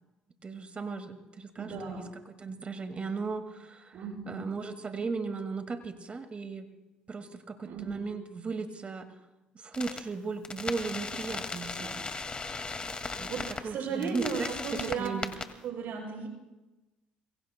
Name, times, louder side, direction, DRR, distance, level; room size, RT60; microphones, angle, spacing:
voice 1, 0.4-2.1 2.4-4.0 4.3-6.7 7.1-9.1 9.5-12.0 13.2-13.3 13.6-15.3, right 4 dB, 35° right, 7 dB, 2.0 m, -36 dB
voice 2, 1.6-2.1 3.9-4.5 7.6-8.0 11.7-11.9 12.9-15.2 15.6-16.3, right 5 dB, 65° right, -1 dB, 6.8 m, -36 dB
sound 1, 9.7-10.0 10.4-13.6 14.0-15.4, left 4 dB, 30° left, 2.0 m, -37 dB
27.5 x 23.0 x 2.2 m, 1.1 s
supercardioid pair, 65°, 3 cm